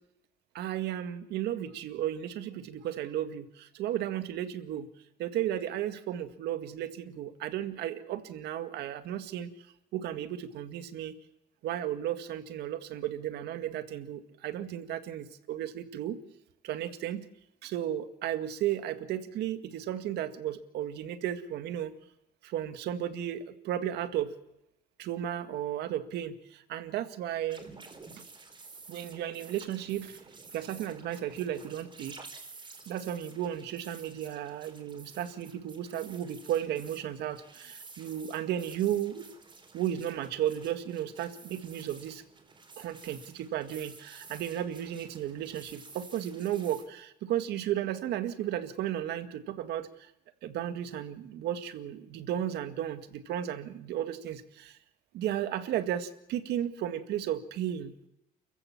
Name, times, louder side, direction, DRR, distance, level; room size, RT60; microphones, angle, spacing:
voice 1, 0.5-4.9 5.2-9.7 9.9-11.1 11.6-16.2 16.6-17.3 17.6-21.9 22.4-24.4 25.0-27.6 28.9-30.2 30.5-32.2 32.9-39.2 39.7-42.2 42.8-50.1 50.4-54.8 55.1-57.9, right 11 dB, 75° right, 10 dB, 1.9 m, -34 dB
sound 1, 27.5-46.8, right 4 dB, 30° right, 4.4 m, -51 dB
29.0 x 15.5 x 7.3 m, 0.84 s
cardioid pair, 110°, 17 cm